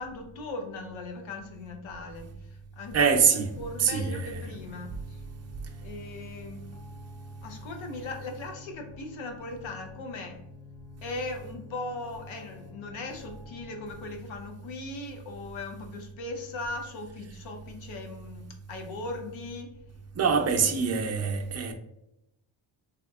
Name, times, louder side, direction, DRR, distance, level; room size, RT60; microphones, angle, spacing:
voice 1, 0.0-3.0 3.6-5.2 5.8-6.7 7.4-10.4 11.0-19.8 20.5-20.6, left 2 dB, 85° left, 0.7 m, -39 dB
voice 2, 2.9-3.5 3.8-4.5 20.2-21.7, right 6 dB, 35° right, 0.5 m, -24 dB
sound 1, 3.4-14.1, left 7 dB, 20° left, 0.8 m, -50 dB
3.5 x 2.8 x 2.3 m
cardioid pair, 115°, 46 cm